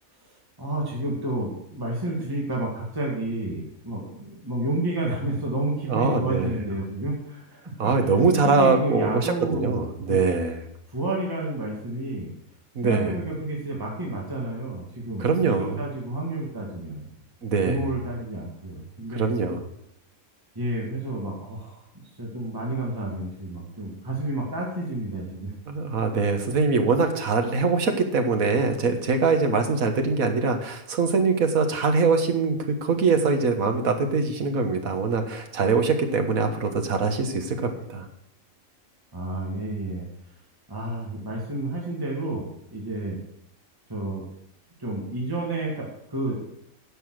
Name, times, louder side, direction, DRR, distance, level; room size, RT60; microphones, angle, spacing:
voice 1, 0.3-8.1 8.4-10.2 10.9-12.3 12.8-17.1 17.7-19.3 20.6-21.8 22.2-25.5 39.1-40.1 40.7-43.2 43.9-44.3 44.8-46.4, right 1 dB, 15° right, -3 dB, 1.9 m, -30 dB
voice 2, 5.9-6.6 7.8-10.6 12.7-13.1 15.2-15.8 17.4-17.9 19.1-19.6 25.7-38.1, right 4 dB, 75° right, 6 dB, 1.7 m, -23 dB
10.0 x 7.0 x 6.3 m, 0.76 s
omnidirectional pair, 1.5 m